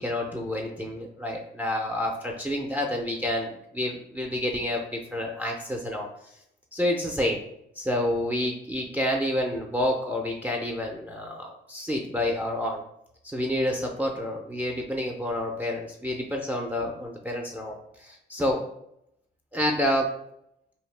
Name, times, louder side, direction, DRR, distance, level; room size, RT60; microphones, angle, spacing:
voice 1, 0.0-6.3 6.7-7.4 7.8-12.8 13.2-18.6 19.5-20.1, left 1 dB, 10° right, 1 dB, 0.4 m, -29 dB
2.6 x 2.0 x 3.1 m, 0.78 s
cardioid pair, 90°, 20 cm